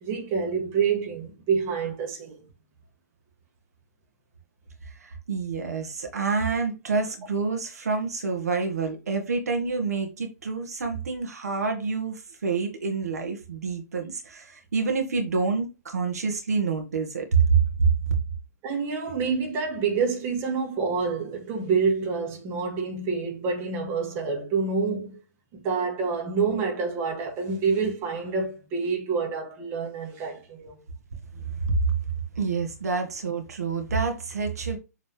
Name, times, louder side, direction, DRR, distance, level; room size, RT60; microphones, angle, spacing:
voice 1, 0.0-2.4 18.6-25.2 25.5-30.8, right 5 dB, 30° right, 1.9 m, -27 dB
voice 2, 4.8-17.9 31.3-31.7 32.4-34.8, right 5 dB, 70° right, 1.9 m, -27 dB
7.3 x 4.0 x 3.4 m
figure-of-eight pair, 125°, 9 cm